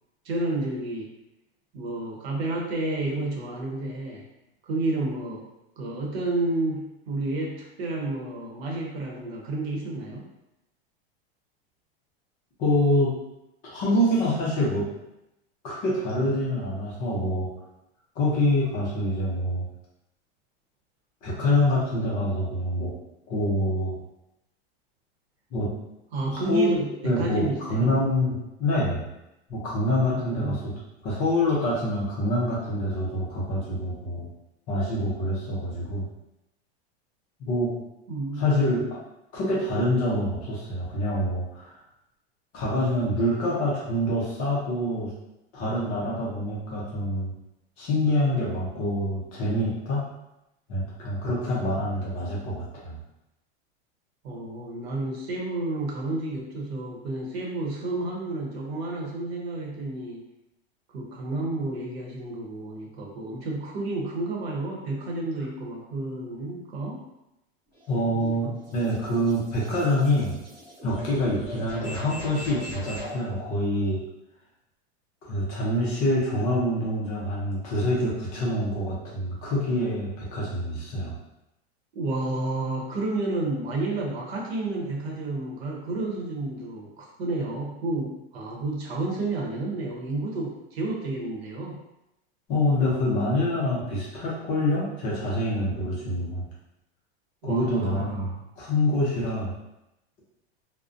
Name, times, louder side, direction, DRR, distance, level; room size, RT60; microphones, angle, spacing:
voice 1, 0.2-1.1 1.7-4.2 4.7-5.5 5.8-10.3 26.1-28.0 30.1-30.6 38.1-38.8 54.2-60.2 60.9-67.0 68.0-68.3 81.9-91.8 97.4-98.4, right 2 dB, 75° right, -2 dB, 0.8 m, -31 dB
voice 2, 12.6-13.1 13.6-14.9 15.6-17.5 18.2-19.6 21.2-22.9 23.3-23.9 25.5-25.7 26.3-26.8 27.0-29.1 29.5-30.7 31.0-34.3 34.7-36.0 37.4-37.7 38.4-38.9 39.3-41.7 42.5-45.1 45.5-47.3 47.8-50.1 50.7-53.0 67.9-70.3 70.8-74.0 75.2-81.1 92.5-96.4 97.4-99.5, left 1 dB, 25° left, -6 dB, 0.5 m, -26 dB
sound 1, 67.7-73.2, equal, 15° right, 1.0 m, -40 dB
2.4 x 2.1 x 2.4 m, 0.89 s
supercardioid pair, 165°, 32 cm